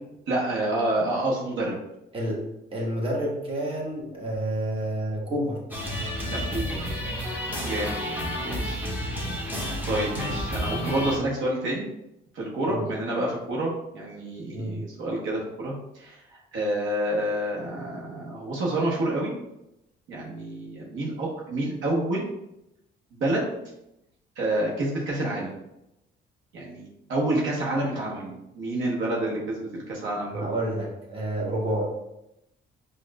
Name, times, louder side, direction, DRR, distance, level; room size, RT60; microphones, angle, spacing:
voice 1, 0.3-1.8 6.3-7.0 7.6-8.0 8.4-8.9 9.8-11.9 12.3-16.2 16.5-19.3 20.1-22.2 23.1-23.5 24.4-25.5 26.5-30.5, right 1 dB, 80° right, -3 dB, 1.0 m, -28 dB
voice 2, 2.7-5.6 12.7-12.9 14.5-14.8 30.3-31.8, right 1 dB, 25° right, -3 dB, 1.1 m, -29 dB
sound 1, 5.7-11.2, equal, 10° right, 0.8 m, -30 dB
4.9 x 2.3 x 2.2 m, 0.86 s
cardioid pair, 90°, 20 cm